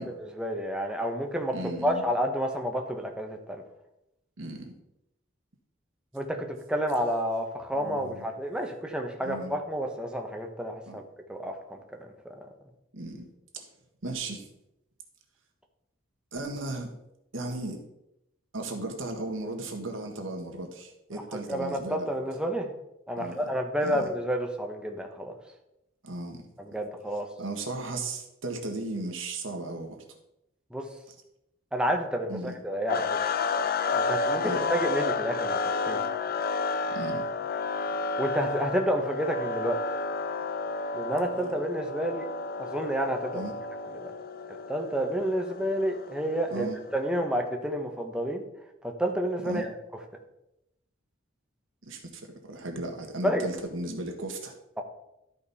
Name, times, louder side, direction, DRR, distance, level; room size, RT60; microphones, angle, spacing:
voice 1, 0.0-1.6 1.8-3.6 6.1-11.0 11.3-11.8 12.3-12.4 21.1-22.7 23.1-25.3 26.6-27.3 30.7-30.9 31.7-33.2 33.9-35.6 35.9-36.0 38.2-39.8 40.9-42.3 42.6-43.5 43.9-44.1 44.7-46.7 46.9-48.5 48.8-49.7 53.2-53.5 54.8-54.9, equal, 5° right, 3 dB, 1.1 m, -30 dB
voice 2, 1.5-2.0 4.4-4.7 7.7-8.3 9.2-9.5 10.9-11.0 12.9-13.3 13.5-13.6 14.0-14.5 16.3-16.9 17.3-17.8 18.5-22.1 23.2-23.5 23.8-24.1 26.0-26.4 27.4-30.0 32.3-32.5 34.4-34.7 36.9-37.2 43.3-43.5 46.5-46.8 49.4-49.7 51.8-54.5, right 2 dB, 75° right, 3 dB, 1.6 m, -36 dB
sound 1, 32.9-47.0, left 4 dB, 45° left, 0.6 m, -31 dB
12.5 x 5.3 x 4.2 m, 0.86 s
head